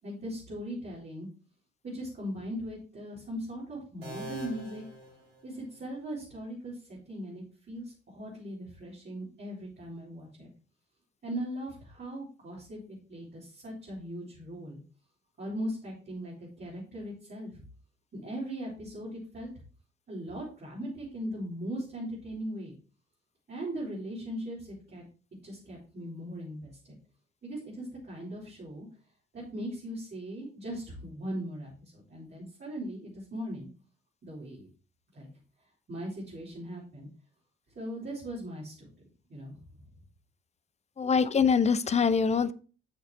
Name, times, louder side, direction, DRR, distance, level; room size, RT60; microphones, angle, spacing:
voice 1, 0.0-1.3 1.8-4.8 5.4-10.5 11.2-14.8 15.4-17.6 18.1-19.5 20.1-22.7 23.5-25.0 25.4-27.0 27.4-28.9 29.3-33.7 34.2-34.7 35.1-35.3 35.9-37.1 37.7-38.9 39.3-39.6, equal, 35° right, -7 dB, 4.1 m, -39 dB
sound 1, 4.0-5.9, left 1 dB, 80° right, 2.9 m, -44 dB
voice 2, 41.0-42.5, left 6 dB, 20° left, 16 dB, 0.5 m, -24 dB
9.6 x 6.5 x 3.0 m, 0.37 s
figure-of-eight pair, 50°, 30 cm